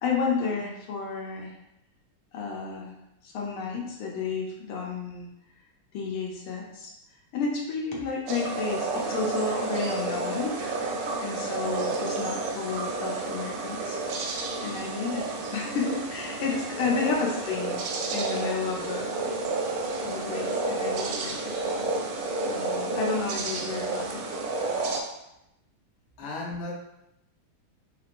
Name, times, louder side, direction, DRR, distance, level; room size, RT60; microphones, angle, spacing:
voice 1, 0.0-1.5 2.3-2.9 3.2-5.3 5.9-6.9 7.3-10.6 11.2-14.0 14.6-19.3 20.0-21.6 22.0-22.1 22.5-24.3, left 4 dB, 80° left, -2 dB, 1.5 m, -31 dB
sound 1, 8.3-25.0, right 3 dB, 75° right, 1.0 m, -31 dB
voice 2, 26.2-26.7, left 2 dB, 65° left, -3 dB, 1.2 m, -35 dB
3.6 x 2.9 x 2.5 m, 0.85 s
omnidirectional pair, 2.4 m